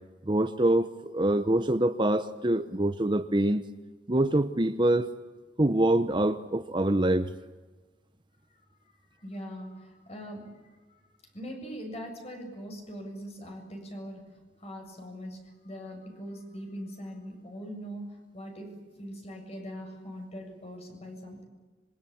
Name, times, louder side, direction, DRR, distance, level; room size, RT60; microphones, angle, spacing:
voice 1, 0.3-3.6 4.1-5.1 5.6-7.3, right 1 dB, 30° right, 10 dB, 0.9 m, -25 dB
voice 2, 9.2-10.5 10.9-11.0 11.3-14.3 14.6-21.4, equal, 35° left, 3 dB, 7.5 m, -41 dB
26.0 x 24.0 x 8.7 m, 1.3 s
head